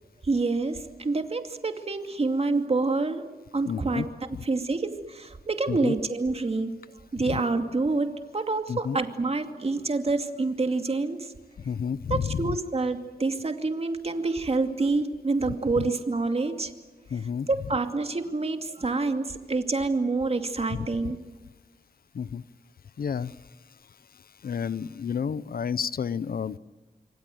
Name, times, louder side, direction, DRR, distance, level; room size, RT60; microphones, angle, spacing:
voice 1, 0.2-4.1 4.4-6.8 7.1-11.3 12.1-16.7 17.5-21.2, right 3 dB, 40° right, 6 dB, 2.5 m, -27 dB
voice 2, 3.7-4.1 4.3-4.4 5.7-5.9 7.2-7.4 8.7-9.0 11.6-12.6 15.8-15.9 17.1-17.5 20.7-20.9 22.1-22.4 23.0-23.4 24.4-26.6, left 7 dB, 70° left, 18 dB, 0.8 m, -30 dB
27.5 x 24.0 x 7.9 m, 1.2 s
wide cardioid pair, 95°, 16 cm